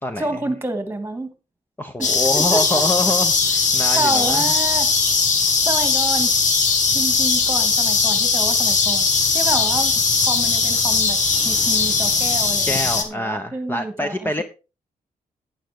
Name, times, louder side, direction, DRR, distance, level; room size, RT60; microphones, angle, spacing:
voice 1, 0.2-1.3 2.0-3.1 3.9-4.9 5.7-6.3 6.9-9.1 9.3-11.2 11.4-14.4, right 2 dB, 15° right, 2.5 m, -28 dB
voice 2, 1.8-4.6 12.6-14.4, left 1 dB, 15° left, 1.1 m, -25 dB
sound 1, 2.0-13.0, left 4 dB, 55° left, 2.4 m, -19 dB
11.5 x 9.6 x 3.8 m
cardioid pair, 80°, 15 cm